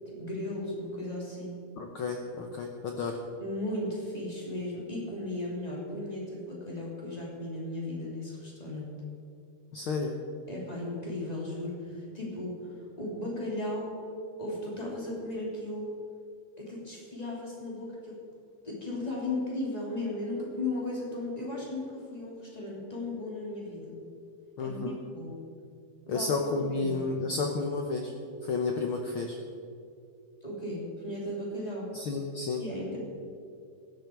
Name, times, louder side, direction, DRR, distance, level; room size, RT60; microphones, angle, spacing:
voice 1, 0.0-1.6 3.4-8.9 10.5-14.0 14.4-15.9 16.6-18.2 18.6-24.0 24.6-25.3 26.1-26.3 26.7-27.0 30.4-31.9 32.6-33.0, left 1 dB, 10° left, -4 dB, 3.0 m, -36 dB
voice 2, 1.8-3.2 9.7-10.2 24.6-24.9 26.1-28.1 28.4-29.4 31.9-32.6, left 4 dB, 85° left, 3 dB, 1.1 m, -31 dB
16.0 x 12.5 x 4.7 m, 2.4 s
omnidirectional pair, 3.7 m